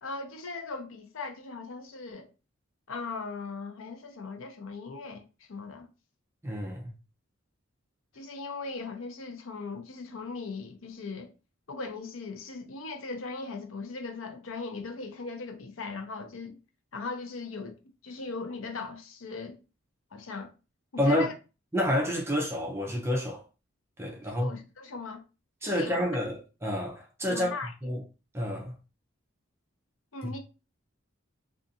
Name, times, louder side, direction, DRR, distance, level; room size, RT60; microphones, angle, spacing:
voice 1, 0.0-2.3 2.9-5.9 8.1-11.3 11.7-16.6 16.9-19.6 20.1-20.5 21.0-21.3 24.2-25.2 25.6-26.0 27.3-27.7 30.1-30.4, left 4 dB, 70° left, 0.6 m, -39 dB
voice 2, 6.4-6.9 21.0-21.3 21.7-23.4 24.0-24.5 25.6-27.5 27.8-28.0 28.3-28.7 30.2-30.3, equal, 10° right, 0.5 m, -29 dB
2.5 x 2.4 x 2.6 m
head